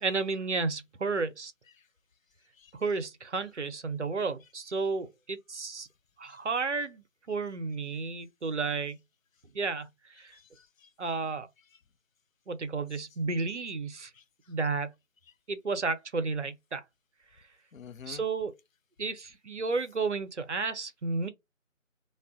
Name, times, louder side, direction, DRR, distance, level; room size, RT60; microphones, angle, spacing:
voice 1, 0.0-1.5 2.8-5.9 6.2-9.0 9.5-9.9 10.2-10.3 11.0-11.5 12.5-14.1 14.5-14.9 15.5-16.8 18.1-18.5 19.0-21.3, right 4 dB, 60° right, 0.5 m, -32 dB
voice 2, 10.3-11.1 14.1-14.2 17.7-18.2, left 7 dB, 80° left, 0.5 m, -50 dB
2.6 x 2.2 x 2.4 m
figure-of-eight pair, 165°, 40 cm